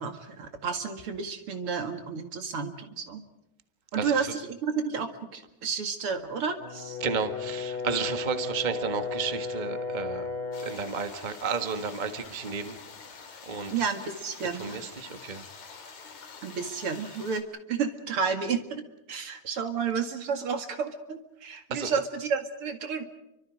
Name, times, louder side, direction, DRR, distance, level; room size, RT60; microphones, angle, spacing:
voice 1, 0.0-3.2 3.9-7.0 13.7-14.8 16.4-18.8 19.1-23.0, right 6 dB, 45° right, 7 dB, 2.6 m, -31 dB
voice 2, 4.0-4.3 7.0-10.3 10.6-12.8 13.5-13.7 14.5-15.4 21.7-21.9, right 5 dB, 80° right, 8 dB, 0.4 m, -32 dB
Brass instrument, 6.6-10.8, left 4 dB, 85° left, 4.3 m, -34 dB
sound 1, 10.5-17.4, left 5 dB, 60° left, 4.1 m, -46 dB
29.5 x 25.0 x 5.0 m, 0.91 s
omnidirectional pair, 3.7 m